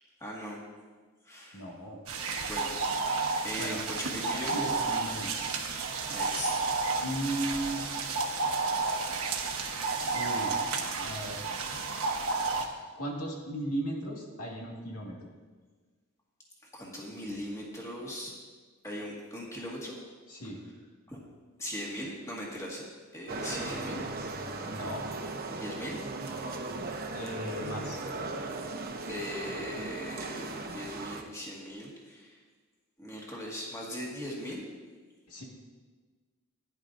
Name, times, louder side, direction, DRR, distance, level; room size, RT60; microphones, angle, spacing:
voice 1, 0.2-0.6 1.2-1.7 2.5-2.8 3.4-4.7 6.1-6.6 16.7-18.3 18.8-20.0 21.1-21.2 21.6-22.8 23.1-24.0 25.6-26.0 29.1-32.4 33.0-34.6, equal, 15° left, -3 dB, 1.7 m, -39 dB
voice 2, 1.5-2.0 3.6-3.8 4.5-5.4 7.0-7.9 10.1-11.5 13.0-15.2 20.3-20.6 24.6-25.1 27.1-28.0 35.3-35.4, right 1 dB, 85° left, -2 dB, 2.0 m, -36 dB
sound 1, 2.1-12.6, right 4 dB, 75° right, 1.2 m, -31 dB
sound 2, 23.3-31.2, right 3 dB, 40° right, 0.9 m, -37 dB
16.0 x 10.0 x 2.6 m, 1.4 s
head